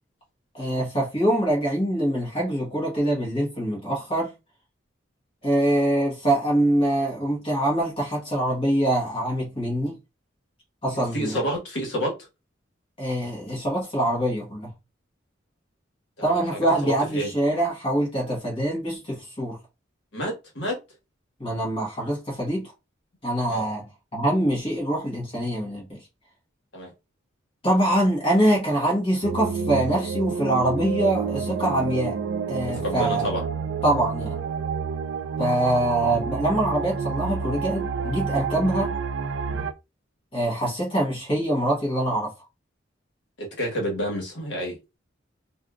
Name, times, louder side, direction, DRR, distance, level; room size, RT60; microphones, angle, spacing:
voice 1, 0.5-4.3 5.4-10.0 10.8-11.3 13.0-14.7 16.2-19.6 21.4-22.7 23.2-23.8 24.1-26.0 27.6-32.2 32.5-33.3 33.8-34.4 35.4-38.9 40.3-42.3, right 1 dB, 30° left, 1.3 m, -24 dB
voice 2, 10.9-12.1 16.2-17.3 20.1-20.8 23.5-23.7 26.7-26.9 32.7-33.5 43.4-44.8, equal, 70° left, 1.3 m, -29 dB
sound 1, 29.2-39.7, right 5 dB, 70° right, 0.3 m, -29 dB
3.4 x 2.6 x 2.4 m
head